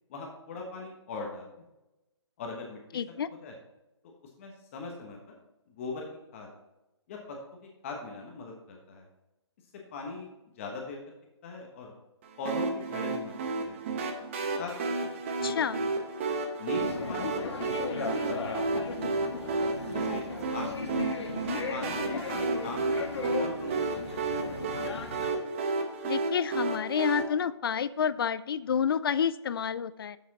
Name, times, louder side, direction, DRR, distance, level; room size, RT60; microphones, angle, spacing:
voice 1, 0.1-1.6 2.4-2.8 3.4-3.5 4.4-5.4 5.7-6.1 6.3-6.5 7.1-9.1 9.9-10.3 10.6-11.0 11.4-11.9 12.4-14.1 14.6-15.1 15.4-16.0 16.6-17.5 17.8-18.8 19.1-19.3 19.9-20.2 20.5-21.4 21.7-24.8, left 3 dB, 30° left, 1 dB, 1.2 m, -41 dB
voice 2, 2.9-3.3 15.4-15.8 26.0-30.2, left 7 dB, 55° left, 17 dB, 0.4 m, -29 dB
sound 1, 12.4-27.2, right 3 dB, 25° right, 0.8 m, -32 dB
sound 2, 16.7-25.3, left 4 dB, 70° left, 1.5 m, -36 dB
7.2 x 7.1 x 4.1 m, 0.98 s
hypercardioid pair, 165°, 14 cm